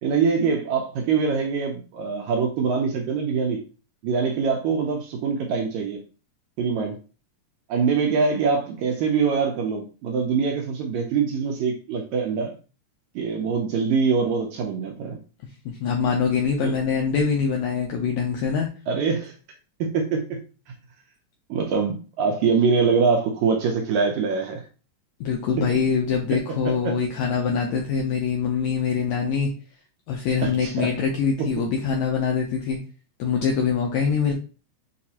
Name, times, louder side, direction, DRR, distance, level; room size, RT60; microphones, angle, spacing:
voice 1, 0.0-3.6 4.0-6.0 6.6-7.0 7.7-12.5 13.1-15.2 16.6-16.7 18.9-19.3 19.8-20.4 20.7-20.8 21.5-24.6 25.6-25.7 26.8-26.9 30.4-30.9, right 5 dB, 80° right, 1.7 m, -24 dB
voice 2, 15.6-18.7 25.2-29.5 30.1-32.8 33.2-34.3, left 6 dB, 80° left, 1.6 m, -24 dB
6.3 x 2.4 x 2.8 m
omnidirectional pair, 3.8 m